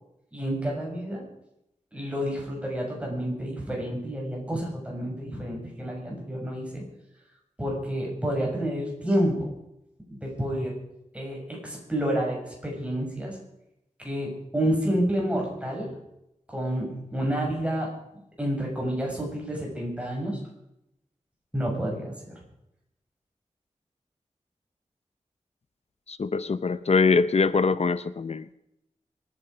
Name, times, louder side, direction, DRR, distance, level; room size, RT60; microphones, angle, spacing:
voice 1, 0.3-1.2 1.9-6.8 7.6-9.5 10.1-10.8 11.1-13.4 14.0-16.0 16.5-17.9 18.4-20.4 21.5-22.3, equal, 10° right, -1 dB, 6.7 m, -29 dB
voice 2, 26.1-28.5, left 4 dB, 60° left, 14 dB, 0.7 m, -23 dB
25.5 x 10.0 x 5.1 m, 0.83 s
wide cardioid pair, 100°, 12 cm